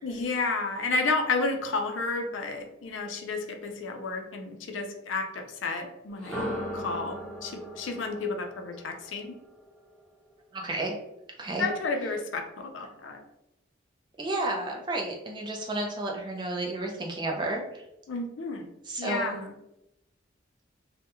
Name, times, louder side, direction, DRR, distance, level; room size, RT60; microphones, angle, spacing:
voice 1, 0.0-6.4 6.7-9.3 11.6-13.2 18.1-18.7 19.0-19.5, left 3 dB, 80° left, 4 dB, 0.4 m, -31 dB
sound 1, 6.1-10.1, equal, 5° left, 0.8 m, -38 dB
voice 2, 10.5-10.9 11.4-11.7 14.2-17.8 18.8-19.4, right 2 dB, 25° right, 0 dB, 0.4 m, -31 dB
2.2 x 2.1 x 2.9 m, 0.86 s
head